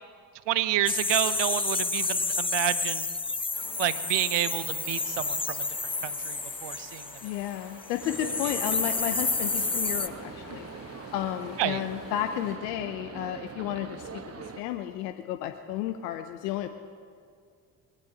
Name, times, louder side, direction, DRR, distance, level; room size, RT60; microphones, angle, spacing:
voice 1, 0.5-3.1 3.8-5.6 6.0-7.0 11.6-11.8, right 14 dB, 65° right, 15 dB, 0.8 m, -29 dB
sound 1, 0.9-7.5 7.8-10.1, left 3 dB, 10° left, 0.7 m, -30 dB
Stream, 3.5-12.6, left 3 dB, 65° left, 4.9 m, -49 dB
voice 2, 7.2-10.7 11.1-14.1 14.3-16.7, left 12 dB, 90° left, 8 dB, 0.7 m, -32 dB
sound 2, 8.0-14.6, right 5 dB, 30° right, 1.2 m, -42 dB
22.5 x 16.5 x 2.8 m, 2.1 s
hypercardioid pair, 50°, 46 cm